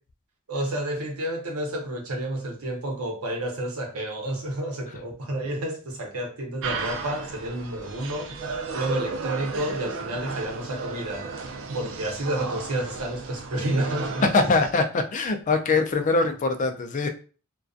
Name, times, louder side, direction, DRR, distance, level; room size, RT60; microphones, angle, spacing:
voice 1, 0.5-14.5, right 1 dB, 85° right, 0.8 m, -30 dB
sound 1, 6.6-14.7, right 3 dB, 60° right, 0.4 m, -34 dB
voice 2, 14.2-17.1, left 3 dB, 35° left, 0.3 m, -23 dB
2.5 x 2.2 x 2.3 m
head